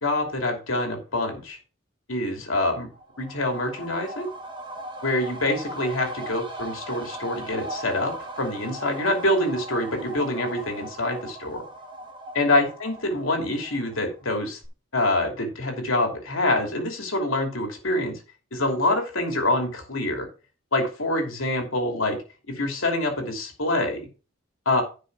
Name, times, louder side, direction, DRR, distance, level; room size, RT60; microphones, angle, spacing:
voice 1, 0.0-1.6 2.1-2.9 3.2-4.3 5.0-11.6 12.3-14.6 14.9-18.2 18.5-20.3 20.7-22.2 22.5-24.1 24.7-24.8, left 1 dB, 75° left, 3 dB, 2.8 m, -26 dB
sound 1, 2.9-14.3 14.6-14.7, right 1 dB, 25° right, 1.8 m, -38 dB
10.5 x 5.5 x 4.7 m, 0.33 s
head